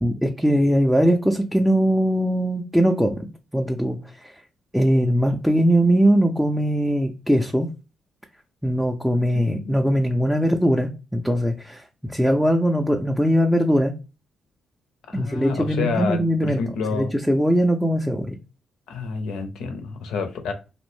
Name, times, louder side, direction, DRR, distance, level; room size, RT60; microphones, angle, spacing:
voice 1, 0.0-4.0 4.2-4.3 4.7-7.7 8.6-13.9 15.1-16.6 16.9-18.4, equal, ahead, 2 dB, 0.3 m, -21 dB
voice 2, 15.1-17.1 18.9-20.5, left 4 dB, 80° left, 6 dB, 0.5 m, -28 dB
2.5 x 2.1 x 3.0 m, 0.31 s
cardioid pair, 75°, 0 cm